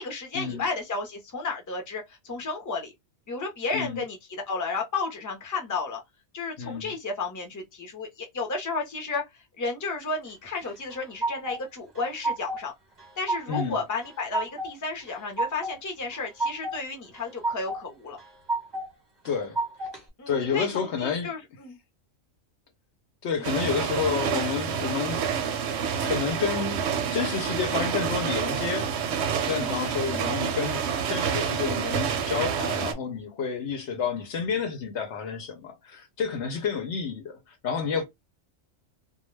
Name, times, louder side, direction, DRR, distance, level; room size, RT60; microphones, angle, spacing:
voice 1, 0.0-2.9 3.3-6.0 6.3-12.7 13.2-18.2 20.2-21.8 23.4-23.6 29.8-30.0, left 4 dB, 20° left, 0.5 m, -33 dB
voice 2, 6.6-6.9 13.5-13.8 19.2-19.6 20.3-21.3 23.2-25.2 26.0-28.9 29.5-38.0, left 6 dB, 70° left, 0.9 m, -30 dB
sound 1, 10.6-11.6 11.9-12.7 13.0-13.7 14.0-14.7 15.1-15.8 16.1-16.8 17.1-17.8 18.2-18.9 19.2-20.0, right 2 dB, 25° right, 0.7 m, -31 dB
sound 2, 23.4-32.9, right 7 dB, 65° right, 0.8 m, -28 dB
2.2 x 2.2 x 3.1 m
omnidirectional pair, 1.3 m